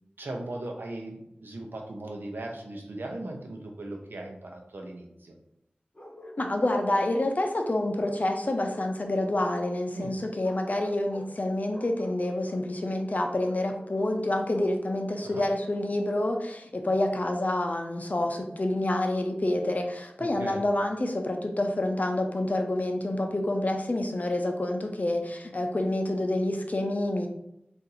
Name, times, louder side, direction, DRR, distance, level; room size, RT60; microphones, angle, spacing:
voice 1, 0.2-5.3 9.9-10.1 15.2-15.4 20.2-20.6, right 2 dB, 80° right, 2 dB, 0.6 m, -38 dB
Bark, 5.9-7.6 8.0-9.7 10.4-11.4 11.7-12.7 13.4-15.1, equal, 30° left, 0.9 m, -48 dB
voice 2, 6.4-27.3, left 1 dB, 50° left, 3 dB, 0.5 m, -28 dB
2.7 x 2.5 x 3.9 m, 0.81 s
wide cardioid pair, 50°, 3 cm